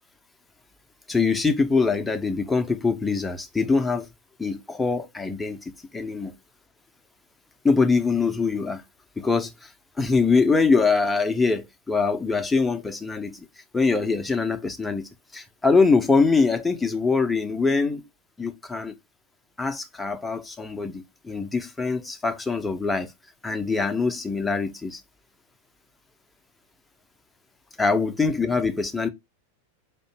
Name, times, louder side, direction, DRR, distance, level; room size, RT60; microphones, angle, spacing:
voice 1, 1.1-4.1 4.4-5.6 5.9-6.3 7.6-8.8 9.2-9.7 10.0-13.5 13.7-18.0 18.4-18.9 19.6-23.1 23.4-25.0 27.8-29.1, left 4 dB, 10° left, 0.7 m, -23 dB
4.4 x 2.7 x 4.4 m
figure-of-eight pair, 90°, 0 cm